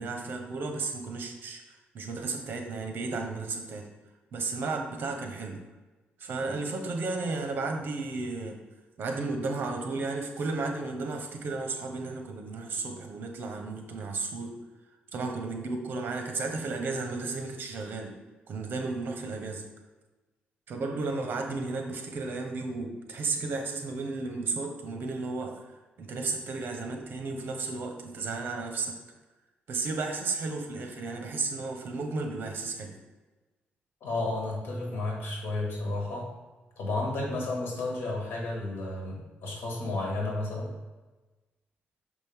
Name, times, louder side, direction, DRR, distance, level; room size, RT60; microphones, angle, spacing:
voice 1, 0.0-3.9 4.3-5.6 6.2-8.6 9.0-14.5 15.1-18.1 18.5-19.6 20.7-25.7 26.0-28.9 29.7-32.9, right 3 dB, 55° right, 4 dB, 1.1 m, -33 dB
voice 2, 34.0-36.3 36.8-40.7, left 2 dB, 65° left, -1 dB, 2.2 m, -32 dB
6.3 x 5.2 x 3.6 m, 1.2 s
cardioid pair, 135°, 4 cm